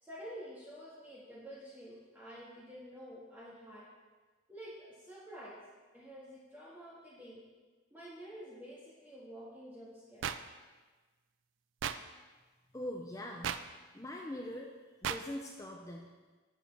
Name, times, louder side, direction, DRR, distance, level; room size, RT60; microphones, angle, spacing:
voice 1, 0.0-3.9 4.5-5.6 5.9-7.4 7.9-10.3, equal, 10° right, -8 dB, 1.6 m, -49 dB
sound 1, 10.2-10.4 11.8-12.0 13.4-13.6 15.0-15.2, right 9 dB, 70° right, 0.4 m, -34 dB
voice 2, 12.7-13.6 13.9-14.7 15.0-16.1, left 1 dB, 15° left, 1 dB, 0.5 m, -42 dB
9.7 x 7.8 x 3.4 m, 1.3 s
head